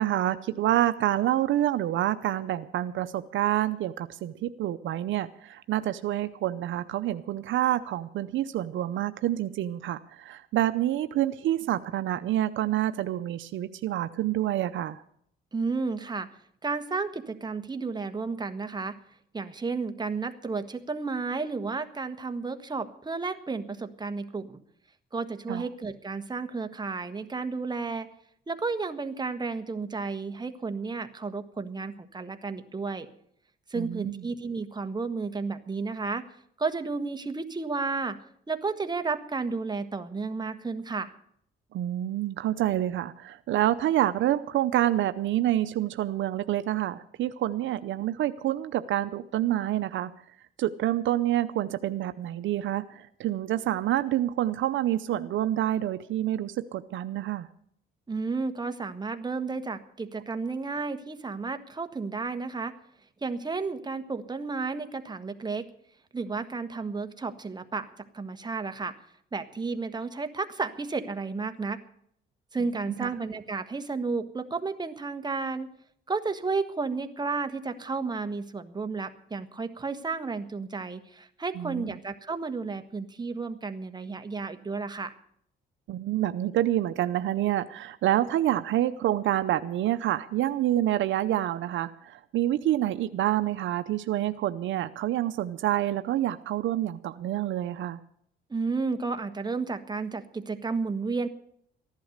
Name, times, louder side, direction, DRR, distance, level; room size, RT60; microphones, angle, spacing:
voice 1, 0.0-15.0 25.5-25.6 33.8-34.2 41.7-50.1 50.6-57.5 73.0-73.1 81.6-82.0 85.9-98.0, right 13 dB, 75° right, 11 dB, 0.7 m, -27 dB
voice 2, 15.5-16.3 16.6-18.9 19.3-24.6 25.1-28.1 28.5-33.1 33.7-36.2 36.6-38.2 38.5-41.1 58.1-62.7 63.2-65.7 66.1-67.9 68.1-68.9 69.3-71.8 72.5-75.7 76.1-85.1 98.5-101.3, right 4 dB, 20° right, 8 dB, 1.4 m, -32 dB
14.5 x 11.5 x 6.5 m, 0.68 s
cardioid pair, 90°, 20 cm